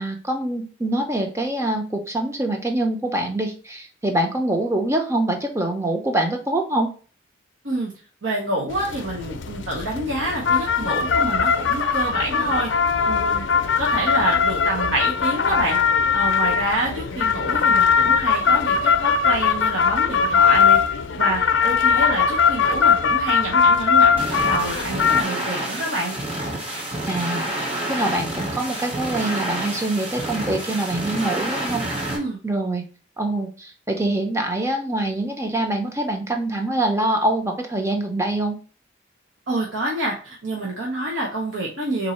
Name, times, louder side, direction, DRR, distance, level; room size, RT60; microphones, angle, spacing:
voice 1, 0.0-6.9 27.1-27.4 27.9-31.8 32.4-32.8 33.2-38.6, right 1 dB, 15° right, 3 dB, 0.6 m, -24 dB
voice 2, 8.2-12.7 13.1-13.4 13.8-15.8 16.1-20.8 21.2-26.2 32.1-32.4 39.5-42.1, right 1 dB, 80° right, -3 dB, 0.9 m, -27 dB
sound 1, 8.7-25.2, left 6 dB, 75° left, 0.5 m, -20 dB
sound 2, 24.2-32.2, right 1 dB, 30° right, 1.3 m, -28 dB
3.8 x 2.7 x 4.2 m, 0.38 s
head